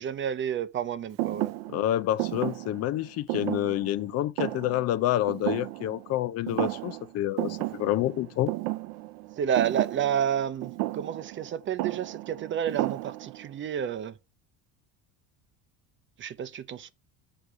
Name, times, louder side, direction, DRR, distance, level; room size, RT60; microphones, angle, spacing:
voice 1, 0.0-1.5 9.4-14.1 16.2-16.9, right 9 dB, 35° right, 0.6 m, -30 dB
Thump thud, 1.2-6.2 6.5-7.1 7.4-13.5, right 18 dB, 75° right, 0.6 m, -33 dB
voice 2, 1.7-8.5, left 13 dB, 45° left, 0.5 m, -28 dB
6.8 x 5.0 x 5.9 m
cardioid pair, 125°, 35 cm